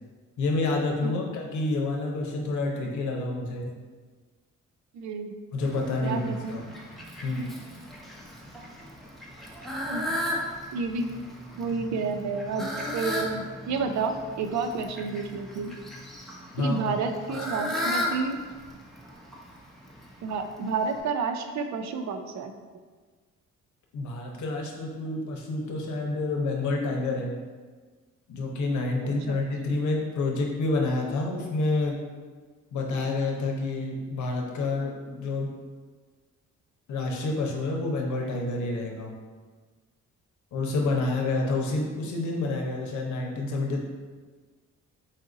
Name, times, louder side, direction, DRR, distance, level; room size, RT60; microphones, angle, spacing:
voice 1, 0.4-3.7 5.5-6.6 7.2-7.6 16.5-16.9 23.9-27.3 28.3-32.0 32.7-35.5 36.9-39.2 40.5-43.8, left 2 dB, 75° left, 1 dB, 0.8 m, -28 dB
voice 2, 4.9-5.3 6.0-6.6 9.9-10.2 10.7-11.1 11.6-15.7 16.6-18.4 20.2-22.5 29.3-29.4, right 4 dB, 65° right, 6 dB, 0.5 m, -30 dB
Fowl, 5.6-21.0, left 1 dB, ahead, 0.7 m, -36 dB
4.0 x 2.5 x 3.9 m, 1.4 s
cardioid pair, 90°, 30 cm